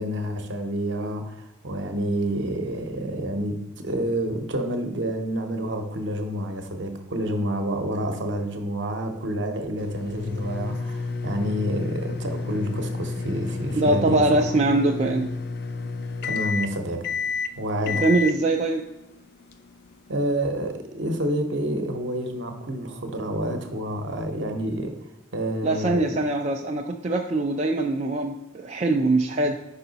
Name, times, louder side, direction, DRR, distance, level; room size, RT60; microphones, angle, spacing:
voice 1, 0.0-14.5 16.2-17.1 17.6-18.1 20.1-25.0 25.3-26.2, right 1 dB, 60° right, 5 dB, 0.8 m, -28 dB
sound 1, 9.8-20.1, left 4 dB, 50° left, 0.3 m, -31 dB
voice 2, 13.8-15.3 17.9-18.8 25.6-29.6, right 2 dB, 30° right, 2 dB, 0.3 m, -22 dB
5.5 x 4.7 x 4.0 m, 0.91 s
head